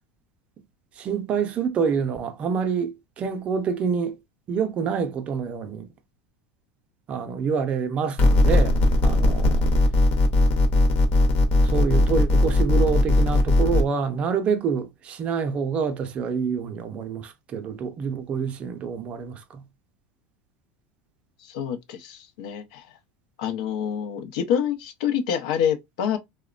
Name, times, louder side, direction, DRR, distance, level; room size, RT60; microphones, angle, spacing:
voice 1, 0.9-4.2 4.5-5.9 7.1-9.6 11.6-19.6, right 6 dB, 30° right, 0.5 m, -27 dB
sound 1, 8.2-13.8, left 2 dB, 40° left, 0.7 m, -19 dB
voice 2, 21.4-23.0 23.4-26.2, left 8 dB, 80° left, 0.5 m, -27 dB
2.9 x 2.1 x 2.3 m
supercardioid pair, 145°, 4 cm